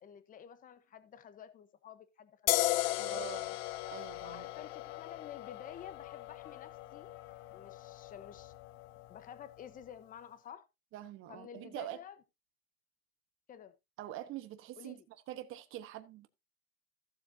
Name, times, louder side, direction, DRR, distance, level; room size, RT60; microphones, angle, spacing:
voice 1, 0.0-3.3 4.2-7.2 7.5-8.5 9.1-10.6 11.3-12.2 13.5-13.8 14.8-15.1, left 9 dB, 20° left, 1.0 m, -51 dB
sound 1, 2.5-9.8, left 18 dB, 50° left, 0.6 m, -37 dB
voice 2, 3.0-3.6 3.9-4.5 10.9-12.0 14.0-16.3, right 13 dB, 30° right, 1.2 m, -45 dB
Speech, 3.4-3.7 4.6-7.6, left 9 dB, 75° left, 3.0 m, -65 dB
15.5 x 7.2 x 2.7 m
supercardioid pair, 135°, 42 cm